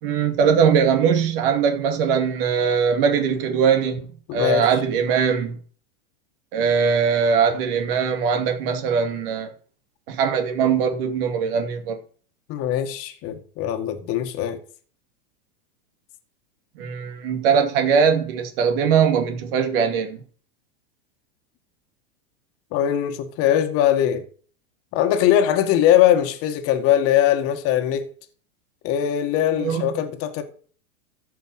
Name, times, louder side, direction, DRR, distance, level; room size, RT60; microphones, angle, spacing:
voice 1, 0.0-5.6 6.5-9.5 10.1-12.0 16.8-20.2 29.5-29.9, right 6 dB, 60° right, 2.5 m, -21 dB
voice 2, 4.3-4.7 12.5-14.6 22.7-24.3 24.9-28.1 28.8-30.4, left 11 dB, 45° left, 1.9 m, -21 dB
15.0 x 5.6 x 4.8 m
hypercardioid pair, 120°, 31 cm